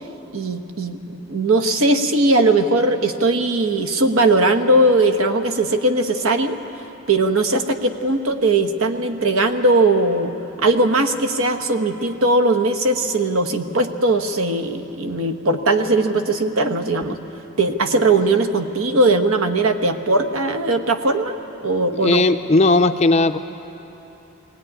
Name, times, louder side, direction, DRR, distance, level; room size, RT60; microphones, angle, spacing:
voice 1, 0.3-6.6 7.1-10.3 10.6-17.2 17.6-21.3 21.6-22.2, right 2 dB, 75° right, 6 dB, 1.2 m, -19 dB
voice 2, 22.0-23.4, left 2 dB, 30° left, 8 dB, 0.4 m, -16 dB
21.0 x 17.5 x 9.8 m, 3.0 s
head